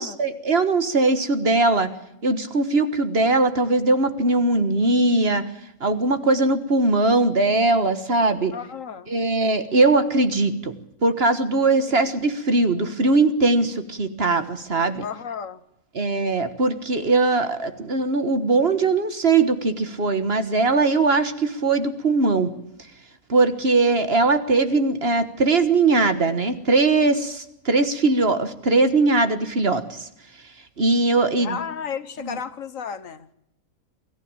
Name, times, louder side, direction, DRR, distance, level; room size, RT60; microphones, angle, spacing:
voice 1, 0.0-1.9 2.2-5.4 5.8-8.5 9.1-10.7 11.0-15.1 16.0-22.5 23.3-30.1 30.8-31.6 32.2-32.4, right 3 dB, 45° right, 10 dB, 1.6 m, -20 dB
voice 2, 8.5-9.1 11.9-12.0 15.0-15.6 31.4-33.3, left 7 dB, 65° left, 13 dB, 1.5 m, -33 dB
24.0 x 14.5 x 8.9 m, 0.81 s
omnidirectional pair, 1.5 m